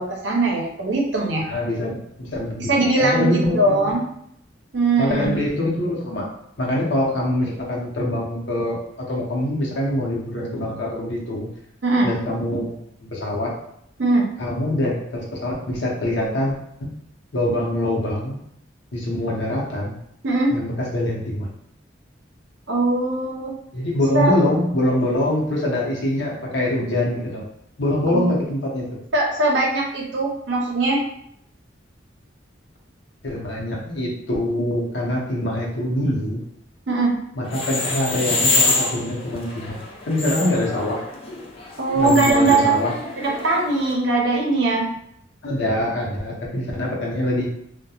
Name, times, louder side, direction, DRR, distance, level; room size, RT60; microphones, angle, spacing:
voice 1, 0.0-1.4 2.7-4.0 4.7-5.4 11.8-12.1 14.0-14.3 20.2-20.6 22.7-23.5 24.1-24.3 28.1-28.3 29.1-31.0 36.9-37.2 41.8-42.8 43.4-44.9, right 2 dB, 75° right, -1 dB, 0.7 m, -20 dB
voice 2, 1.4-3.9 5.0-6.3 6.6-11.5 12.0-12.8 13.1-13.5 14.4-16.5 16.8-16.9 17.3-18.4 18.9-19.9 20.5-21.5 23.7-27.4 27.8-28.9 33.2-36.4 37.3-39.8 40.1-41.0 41.9-42.9 45.4-47.5, left 1 dB, 75° left, -3 dB, 0.8 m, -24 dB
sound 1, 37.4-43.9, left 3 dB, 30° left, 0.4 m, -26 dB
2.8 x 2.1 x 2.3 m, 0.72 s
head